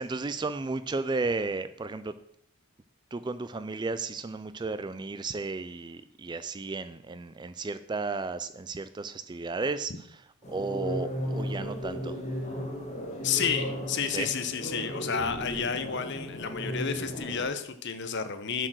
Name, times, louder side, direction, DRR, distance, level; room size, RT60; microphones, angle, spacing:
voice 1, 0.0-2.1 3.1-9.9 10.5-12.2 14.1-14.3, right 3 dB, 20° right, 13 dB, 0.3 m, -33 dB
sound 1, 10.4-17.5, equal, 30° left, 2.0 m, -35 dB
voice 2, 13.2-18.7, left 7 dB, 50° left, 10 dB, 0.8 m, -31 dB
7.8 x 6.5 x 6.2 m, 0.70 s
head